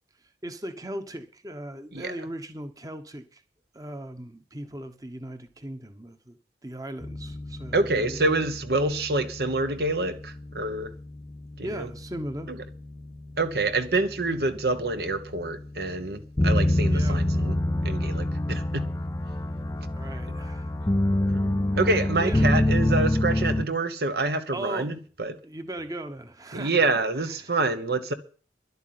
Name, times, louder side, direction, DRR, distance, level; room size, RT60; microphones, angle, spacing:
voice 1, 0.4-3.4 3.7-6.4 6.6-8.2 11.6-12.5 16.9-17.2 19.9-20.7 22.2-22.5 24.5-24.9 25.4-26.8 27.3-27.5, right 1 dB, 20° right, 1.1 m, -38 dB
sound 1, 7.0-23.6, left 1 dB, 15° left, 0.6 m, -28 dB
voice 2, 7.7-10.9 11.6-11.9 12.5-12.6 13.4-17.6 17.8-18.9 21.3-25.4 26.5-28.1, right 2 dB, 65° right, 1.1 m, -27 dB
11.5 x 8.2 x 9.5 m
head